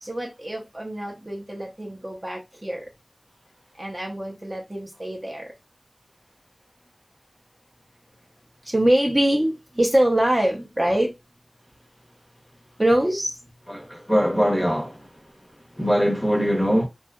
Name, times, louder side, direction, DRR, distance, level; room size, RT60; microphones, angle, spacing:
voice 1, 0.0-2.8 3.8-5.5 8.6-11.1 12.8-13.3, right 1 dB, 25° right, 0.7 m, -24 dB
voice 2, 13.7-14.9 15.8-16.9, equal, ahead, 0.9 m, -21 dB
2.8 x 2.3 x 2.3 m
wide cardioid pair, 55°, 0 cm